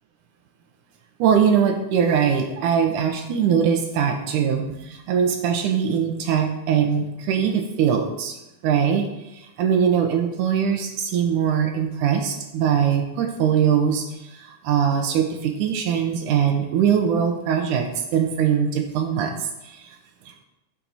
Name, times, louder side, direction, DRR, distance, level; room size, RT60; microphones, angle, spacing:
voice 1, 1.2-8.3 8.6-9.1 9.6-14.1 14.4-19.8, right 7 dB, 85° right, 4 dB, 2.5 m, -21 dB
9.7 x 7.7 x 5.8 m, 0.93 s
omnidirectional pair, 3.5 m